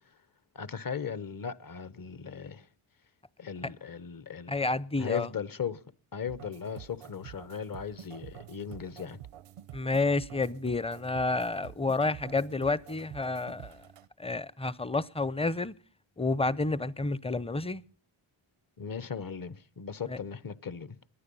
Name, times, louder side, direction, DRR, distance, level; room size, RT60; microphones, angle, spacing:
voice 1, 0.5-2.7 3.4-4.5 5.0-5.8 6.1-9.2 18.8-21.0, left 7 dB, 45° left, 1.0 m, -37 dB
voice 2, 4.5-5.3 9.7-13.8 14.2-15.7 16.2-17.8 20.1-20.2, left 3 dB, 10° left, 0.6 m, -30 dB
sound 1, 6.3-14.1, right 12 dB, 90° right, 0.7 m, -48 dB
22.5 x 9.5 x 5.5 m
cardioid pair, 65°, 50 cm